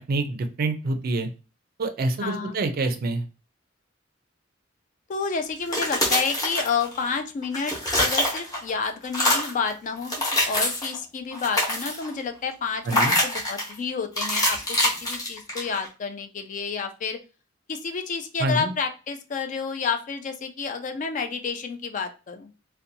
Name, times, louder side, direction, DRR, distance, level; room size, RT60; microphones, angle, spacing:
voice 1, 0.1-1.3 1.8-3.2 12.9-13.1 18.4-18.7, right 2 dB, 50° right, 8 dB, 0.4 m, -26 dB
voice 2, 2.2-2.6 5.1-17.2 17.7-22.5, left 5 dB, 40° left, 7 dB, 0.3 m, -30 dB
sound 1, 5.6-7.1 7.4-8.7 9.0-9.6 10.0-11.0 11.3-12.1 12.9-13.7 14.2-15.9, left 1 dB, 20° left, 0.8 m, -25 dB
2.6 x 2.1 x 2.6 m, 0.33 s
head